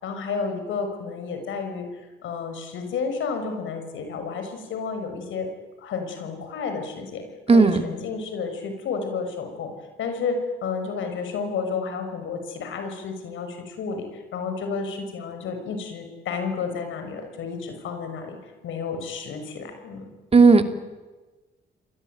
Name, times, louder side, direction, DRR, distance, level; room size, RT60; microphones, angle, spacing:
voice 1, 0.0-1.9 2.2-5.5 5.8-7.2 7.5-9.7 10.0-18.4 18.6-20.1, left 5 dB, 75° left, 6 dB, 6.1 m, -31 dB
voice 2, 7.5-7.8 20.3-20.6, right 4 dB, 30° right, 8 dB, 2.7 m, -14 dB
29.0 x 21.5 x 9.3 m, 1.2 s
cardioid pair, 90°, 20 cm